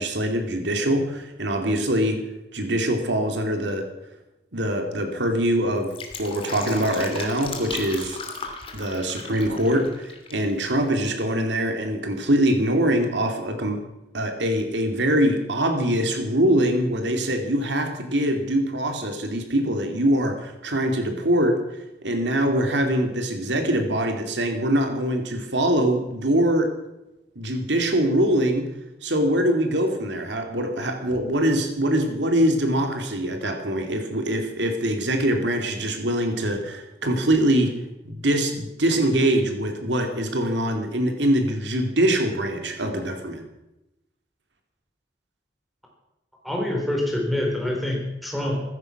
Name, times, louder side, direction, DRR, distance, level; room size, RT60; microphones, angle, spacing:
voice 1, 0.0-2.2 2.5-3.9 4.5-5.9 6.2-8.2 8.7-13.8 14.1-21.6 22.0-26.7 27.4-28.7 29.0-37.7 38.0-43.4, right 1 dB, 80° right, 5 dB, 2.6 m, -23 dB
Fill (with liquid), 5.7-10.5 10.8-10.9, left 4 dB, 30° left, 2.5 m, -36 dB
voice 2, 46.4-48.6, left 1 dB, ahead, -1 dB, 4.1 m, -26 dB
15.5 x 14.5 x 6.0 m, 0.91 s
head